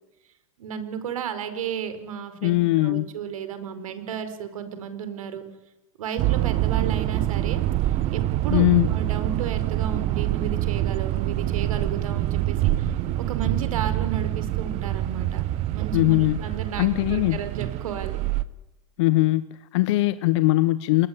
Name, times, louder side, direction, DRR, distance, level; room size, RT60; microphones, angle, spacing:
voice 1, 0.6-5.4 6.0-15.4 15.7-18.2, right 7 dB, 80° right, 10 dB, 5.2 m, -33 dB
voice 2, 2.4-3.1 8.5-9.0 15.9-16.4 16.8-17.4 19.0-21.1, left 18 dB, 60° left, 13 dB, 1.2 m, -21 dB
sound 1, 6.2-18.4, right 14 dB, 35° right, 1.0 m, -26 dB
29.0 x 20.5 x 9.8 m, 1.0 s
supercardioid pair, 135°, 17 cm